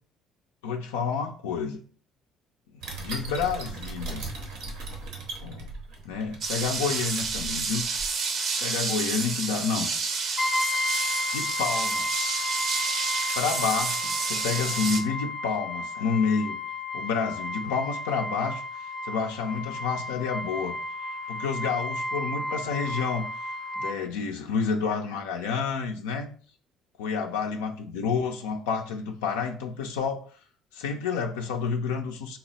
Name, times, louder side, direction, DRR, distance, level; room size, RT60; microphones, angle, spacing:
voice 1, 0.6-1.8 3.0-4.2 5.4-5.7 6.0-7.8 8.6-9.9 11.3-12.4 13.3-16.6 16.9-20.7 21.3-26.3 27.0-30.2 30.7-32.4, left 5 dB, 85° left, 2 dB, 0.4 m, -29 dB
sound 1, 2.8-8.1, right 3 dB, 75° right, 1.0 m, -38 dB
sound 2, 6.4-15.0, right 4 dB, 55° right, 0.7 m, -30 dB
Brass instrument, 10.4-24.0, left 2 dB, 20° left, 0.5 m, -32 dB
4.0 x 2.0 x 4.0 m, 0.44 s
hypercardioid pair, 60°, 0 cm